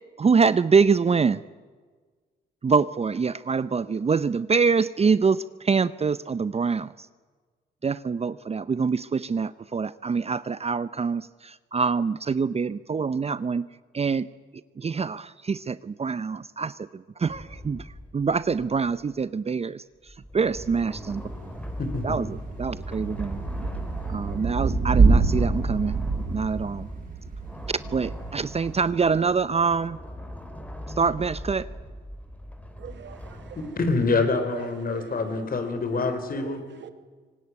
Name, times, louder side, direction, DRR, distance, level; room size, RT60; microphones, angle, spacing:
voice 1, 0.2-1.4 2.6-6.9 7.8-13.7 13.9-14.3 14.8-16.8 17.2-17.9 18.1-19.8 20.3-21.2 22.0-22.3 22.6-23.4 24.1-26.0 26.3-26.9 27.9-30.0 31.0-31.7, right 5 dB, 35° right, 0.7 m, -25 dB
sound 1, 17.3-19.2 20.1-34.3, equal, 5° left, 4.1 m, -40 dB
Thunder / Rain, 20.5-28.8, right 4 dB, 50° right, 7.9 m, -26 dB
voice 2, 21.8-22.2 33.6-36.6, left 3 dB, 50° left, 4.7 m, -26 dB
voice 3, 32.8-33.7 34.5-35.1 35.9-36.0 36.4-36.9, right 8 dB, 70° right, 2.2 m, -42 dB
24.5 x 18.5 x 9.7 m
cardioid pair, 70°, 19 cm